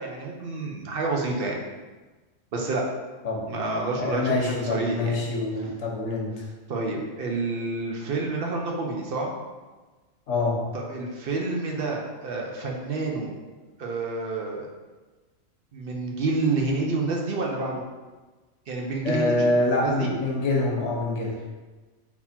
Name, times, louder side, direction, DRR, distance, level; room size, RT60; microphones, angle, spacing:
voice 1, 0.0-1.6 2.5-2.8 3.5-5.2 6.7-9.3 10.7-13.3 13.8-14.7 15.7-17.8 18.7-19.5 19.8-20.1, right 3 dB, 55° right, 0 dB, 0.8 m, -28 dB
voice 2, 3.9-6.4 10.3-10.6 19.0-21.4, left 2 dB, 70° left, -1 dB, 1.3 m, -25 dB
4.0 x 2.9 x 4.2 m, 1.3 s
omnidirectional pair, 1.3 m